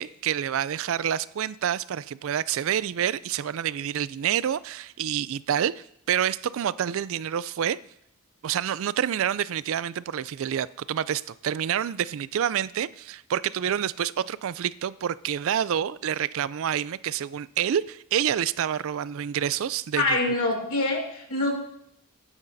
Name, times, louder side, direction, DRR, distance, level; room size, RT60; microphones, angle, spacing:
voice 1, 0.0-7.8 8.4-20.2, right 9 dB, 65° right, 0.3 m, -28 dB
voice 2, 20.0-21.5, left 2 dB, 70° left, 2.8 m, -25 dB
20.0 x 9.7 x 2.7 m
head